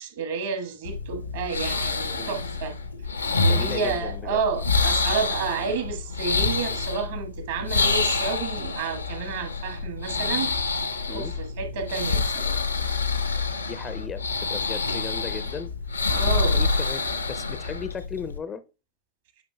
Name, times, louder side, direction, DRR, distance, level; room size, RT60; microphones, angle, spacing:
voice 1, 0.0-2.8 3.4-10.5 11.1-12.6 16.1-16.6, right 5 dB, 60° right, 1.4 m, -30 dB
sound 1, 0.8-18.4, left 4 dB, 80° left, 0.7 m, -27 dB
voice 2, 3.5-4.4 11.1-11.4 13.7-15.7 16.4-18.6, left 6 dB, 20° left, 0.5 m, -36 dB
9.8 x 5.1 x 2.3 m
figure-of-eight pair, 90°, 0 cm